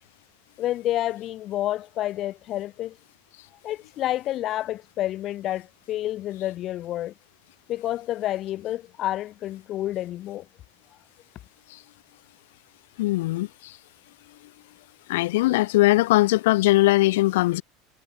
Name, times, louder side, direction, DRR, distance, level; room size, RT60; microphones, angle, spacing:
voice 1, 0.6-3.0 3.6-7.1 7.7-10.5, left 14 dB, 45° left, 4.0 m, -29 dB
voice 2, 13.0-13.8 15.1-17.6, left 18 dB, 80° left, 2.0 m, -20 dB
supercardioid pair, 110°, 0 cm